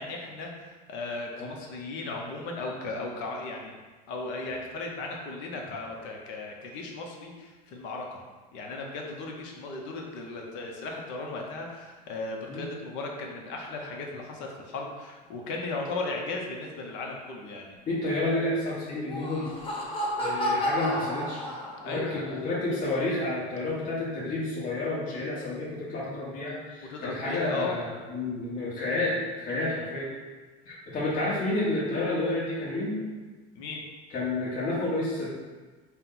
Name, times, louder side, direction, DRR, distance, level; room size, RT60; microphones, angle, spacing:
voice 1, 0.0-3.8 4.1-8.2 8.5-17.8 21.8-22.5 26.9-27.7 29.5-29.9 33.5-33.8, left 3 dB, 60° left, 1 dB, 0.8 m, -36 dB
voice 2, 17.9-19.5 20.2-21.4 21.8-30.1 30.6-33.1 34.1-35.3, left 2 dB, 40° left, -7 dB, 1.3 m, -30 dB
Laughter, 18.9-22.1, equal, 25° left, 0.8 m, -31 dB
4.2 x 2.2 x 3.9 m, 1.3 s
supercardioid pair, 105°, 21 cm